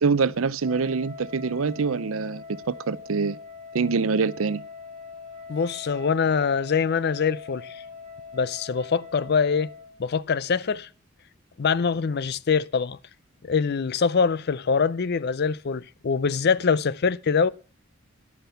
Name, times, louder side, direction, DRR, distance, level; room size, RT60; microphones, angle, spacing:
voice 1, 0.0-3.4 3.7-4.6, right 4 dB, 75° right, 0.6 m, -25 dB
Wind instrument woodwind instrument, 0.6-10.0, left 5 dB, 25° right, 3.8 m, -42 dB
voice 2, 5.5-7.8 8.3-9.7 10.0-10.9 11.6-13.0 13.4-17.5, left 5 dB, 50° left, 0.5 m, -24 dB
11.0 x 9.1 x 5.7 m
head